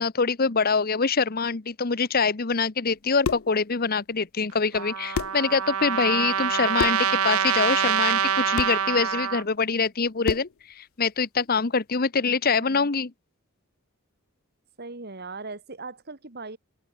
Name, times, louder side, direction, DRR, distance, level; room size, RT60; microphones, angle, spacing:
voice 1, 0.0-10.5 10.8-13.1, left 5 dB, 45° left, 0.9 m, -24 dB
sound 1, 3.0-3.6 4.7-4.8 5.1-5.5 6.8-7.1 8.6-8.8 10.2-10.6, left 5 dB, 70° left, 0.5 m, -29 dB
Trumpet, 4.7-9.4, right 8 dB, 85° right, 0.9 m, -25 dB
voice 2, 12.4-12.9 14.8-16.6, right 3 dB, 50° right, 2.1 m, -39 dB
open air
head